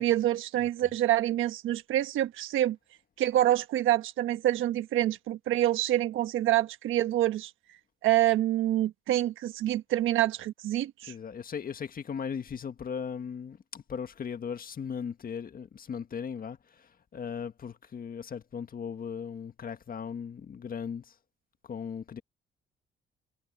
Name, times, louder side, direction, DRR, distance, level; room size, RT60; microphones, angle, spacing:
voice 1, 0.0-2.8 3.2-7.5 8.0-11.1, right 13 dB, 85° right, 1.2 m, -26 dB
voice 2, 0.6-1.0 11.1-21.1 21.6-22.2, left 7 dB, 45° left, 1.7 m, -38 dB
cardioid pair, 90°, 20 cm